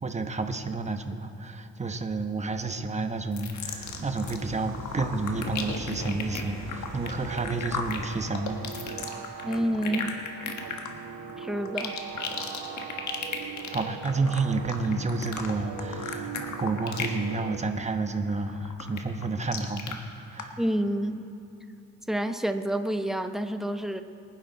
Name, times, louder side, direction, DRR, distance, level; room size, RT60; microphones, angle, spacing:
voice 1, 0.0-9.3 13.4-20.6, right 3 dB, 25° right, 7 dB, 1.1 m, -30 dB
sound 1, 3.2-8.9, right 3 dB, 60° right, 2.9 m, -43 dB
sound 2, 3.3-4.4 4.7-17.2 17.5-17.9 18.3-19.9 20.4-20.5, left 6 dB, 70° left, 1.6 m, -35 dB
sound 3, 4.1-18.2, right 6 dB, 90° right, 1.3 m, -41 dB
voice 2, 9.4-10.2 11.4-12.0 20.6-21.2 22.1-24.0, right 1 dB, ahead, 7 dB, 0.8 m, -28 dB
23.0 x 10.5 x 4.0 m, 2.9 s
cardioid pair, 90°, 30 cm